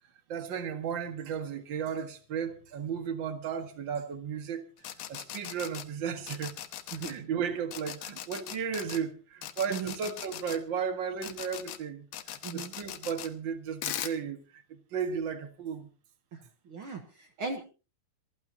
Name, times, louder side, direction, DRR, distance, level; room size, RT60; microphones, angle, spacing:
voice 1, 0.3-4.7 5.1-6.5 7.0-15.9, right 7 dB, 45° right, 1.7 m, -35 dB
sound 1, 4.8-5.8 6.3-7.1 7.7-9.0 9.4-10.6 11.2-11.8 12.1-13.3 13.8-14.1, left 12 dB, 75° left, 2.6 m, -39 dB
voice 2, 6.9-7.3 9.7-9.9 12.4-12.7 16.3-17.6, right 5 dB, 60° right, 1.4 m, -38 dB
26.5 x 12.5 x 2.9 m
omnidirectional pair, 4.1 m